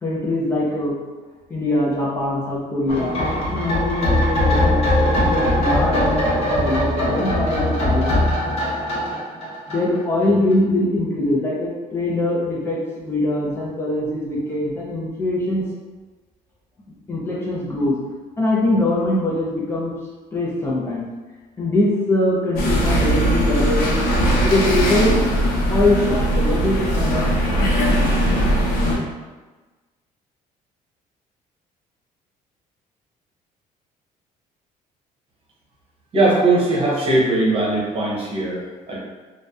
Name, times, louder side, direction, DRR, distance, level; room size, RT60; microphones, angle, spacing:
voice 1, 0.0-1.0 1.5-3.2 3.5-15.6 17.1-18.0 18.4-19.9 20.3-21.0 21.6-24.0 24.4-25.2 25.7-27.3, left 1 dB, 15° left, -6 dB, 0.4 m, -22 dB
sound 1, 2.9-10.2 10.5-10.6, left 1 dB, 45° left, 0.8 m, -20 dB
sound 2, 22.6-29.0, equal, 85° left, 0.5 m, -19 dB
voice 2, 36.1-39.0, right 2 dB, 40° right, -5 dB, 0.8 m, -19 dB
2.6 x 2.0 x 2.2 m, 1.2 s
cardioid pair, 160°, 15 cm